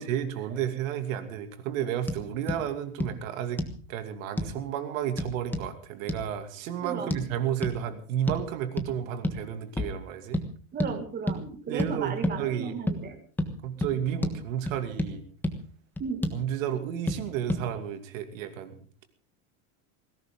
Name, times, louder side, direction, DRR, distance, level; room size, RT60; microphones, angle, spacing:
voice 1, 0.0-3.6 3.9-10.4 11.7-12.8 13.6-15.2 16.3-18.8, right 10 dB, 75° right, 8 dB, 2.7 m, -32 dB
sound 1, 2.1-2.2 2.5-2.6 3.0-3.1 3.6-3.8 4.4-4.6 5.2-5.7 6.1-6.2 7.1-7.2 7.6-7.8 8.3-8.5 8.8-8.9 9.2-9.4 9.8-10.0 10.3-10.5 10.8-10.9 11.3-11.4 11.8-11.9 12.2-12.4 12.9-13.0 13.4-13.5 13.8-13.9 14.2-14.4 14.7-15.1 15.4-15.6 16.0-16.4 17.1-17.2 17.5-17.6, left 1 dB, 5° left, 1.4 m, -29 dB
voice 2, 6.8-7.2 10.7-13.2 16.0-16.3, right 6 dB, 25° right, 6 dB, 2.2 m, -35 dB
20.0 x 17.0 x 3.8 m, 0.41 s
supercardioid pair, 160°, 41 cm